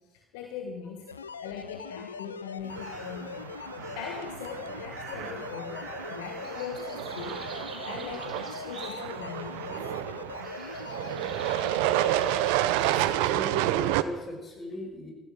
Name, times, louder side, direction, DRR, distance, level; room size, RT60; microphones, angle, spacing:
voice 1, 0.1-1.1 1.4-3.5 3.9-9.8, left 7 dB, 70° left, 3 dB, 1.5 m, -41 dB
sound 1, 1.1-12.4, left 6 dB, 90° left, 0.5 m, -41 dB
sound 2, 2.7-3.3 3.8-4.3 4.9-9.2 9.5-10.0 10.3-13.0, right 3 dB, 45° right, 4.7 m, -47 dB
sound 3, 2.7-14.0, right 14 dB, 70° right, 0.6 m, -30 dB
voice 2, 12.8-15.1, left 1 dB, 30° left, 1 dB, 6.2 m, -39 dB
14.5 x 11.0 x 8.0 m, 1.2 s
hypercardioid pair, 60°, 0 cm